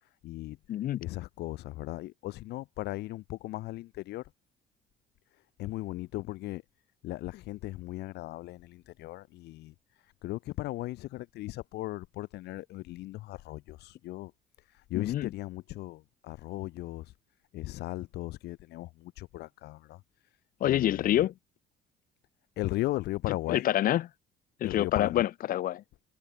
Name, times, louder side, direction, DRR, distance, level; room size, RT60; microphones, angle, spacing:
voice 1, 0.0-0.6 1.0-4.3 5.6-6.6 7.0-14.3 14.6-17.1 17.5-20.3 20.6-21.2 22.6-23.7 24.6-25.2, left 17 dB, 75° left, 1.1 m, -37 dB
voice 2, 0.7-1.0 14.9-15.3 20.6-21.3 23.5-24.0 24.6-25.8, left 12 dB, 60° left, 0.8 m, -27 dB
cardioid pair, 110°, 17 cm